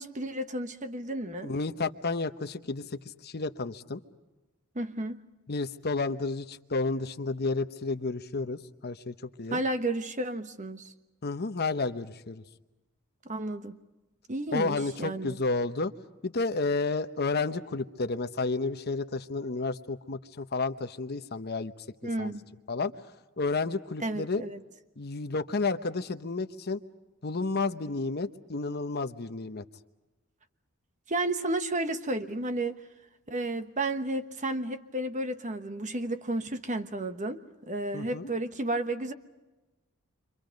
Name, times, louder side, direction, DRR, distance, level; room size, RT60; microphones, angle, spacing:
voice 1, 0.0-1.5 4.7-5.2 9.5-10.9 13.3-13.8 14.3-15.4 22.0-22.4 24.0-24.6 31.1-32.7 33.3-39.1, right 2 dB, 35° right, 8 dB, 1.2 m, -32 dB
voice 2, 1.4-4.0 5.5-9.6 11.2-12.4 14.5-15.9 16.2-21.7 22.2-22.3 22.7-22.9 23.4-24.4 25.0-26.8 27.2-29.6 37.9-38.3, left 3 dB, 50° left, 9 dB, 1.0 m, -31 dB
29.0 x 25.5 x 5.2 m, 1.1 s
head